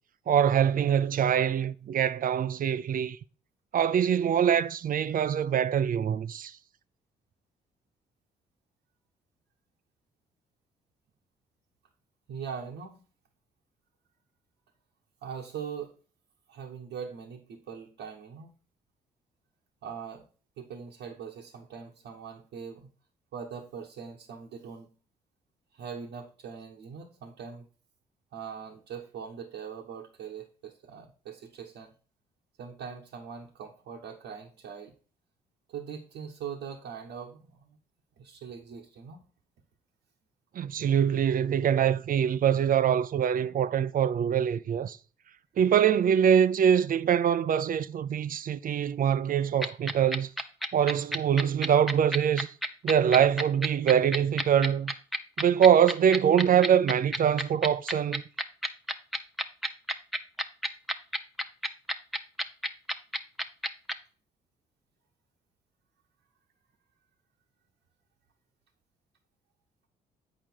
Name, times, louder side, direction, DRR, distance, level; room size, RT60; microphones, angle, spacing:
voice 1, 0.3-3.2 3.7-6.6 40.5-45.0 45.6-50.3 50.7-52.5 52.8-54.9 55.4-58.2, right 8 dB, 45° right, 0.5 m, -24 dB
voice 2, 12.3-13.0 15.2-15.9 16.5-18.5 19.8-20.3 20.6-22.9 23.3-24.9 25.7-27.7 28.3-31.9 32.6-34.9 35.7-37.8 38.2-39.2, right 7 dB, 70° right, 1.2 m, -41 dB
sound 1, 49.6-63.9, equal, ahead, 0.8 m, -29 dB
8.7 x 4.9 x 4.5 m
hypercardioid pair, 45°, 19 cm